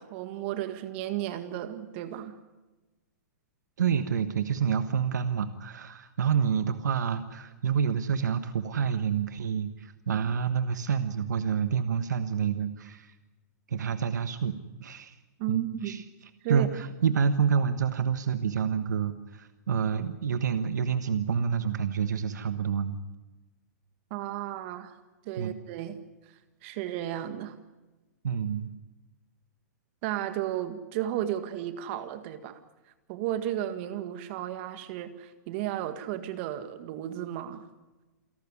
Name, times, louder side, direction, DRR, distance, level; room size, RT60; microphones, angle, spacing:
voice 1, 0.0-2.4 15.4-15.9 16.4-16.7 24.1-25.0 25.3-26.0 26.6-27.6 30.0-32.6 33.1-37.7, right 12 dB, 45° right, 10 dB, 1.9 m, -33 dB
voice 2, 3.8-13.1 13.7-15.2 15.5-16.0 16.5-23.0 25.4-25.5 28.2-28.7, right 7 dB, 90° right, 11 dB, 1.3 m, -28 dB
28.0 x 12.5 x 9.9 m, 1.1 s
hypercardioid pair, 145°, 9 cm